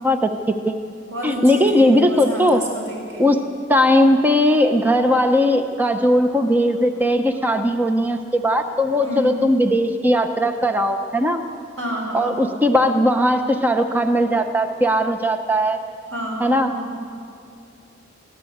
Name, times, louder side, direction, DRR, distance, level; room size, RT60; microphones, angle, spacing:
voice 1, 0.0-0.7 1.2-2.6 3.2-3.4 3.7-11.4 12.1-15.8 16.4-16.7, equal, 10° right, 5 dB, 0.8 m, -18 dB
voice 2, 1.1-3.3 9.0-9.4 11.8-12.4 16.1-17.0, right 1 dB, 85° right, -2 dB, 7.1 m, -30 dB
22.5 x 17.0 x 8.0 m, 2.4 s
head